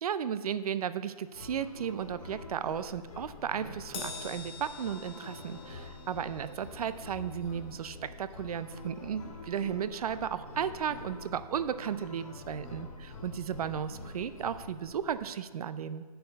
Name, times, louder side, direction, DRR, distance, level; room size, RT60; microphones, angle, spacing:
voice 1, 0.0-12.9 13.2-16.0, right 8 dB, 70° right, 14 dB, 0.6 m, -34 dB
sound 1, 1.3-15.2, left 3 dB, 70° left, 2.3 m, -46 dB
Crash cymbal, 3.9-10.6 10.9-11.1 12.2-12.3, left 4 dB, 40° left, 1.7 m, -48 dB
9.0 x 6.8 x 6.6 m, 1.4 s
hypercardioid pair, 175°, 20 cm